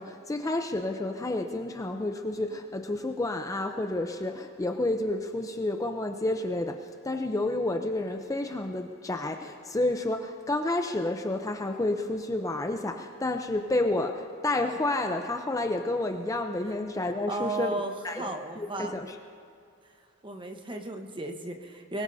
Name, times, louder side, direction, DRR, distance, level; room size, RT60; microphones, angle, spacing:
voice 1, 0.0-17.7 18.0-19.2, left 2 dB, 15° left, 5 dB, 0.6 m, -30 dB
voice 2, 17.3-18.9 20.2-22.0, right 2 dB, 25° right, 5 dB, 1.1 m, -34 dB
24.0 x 21.5 x 2.7 m, 2.6 s
head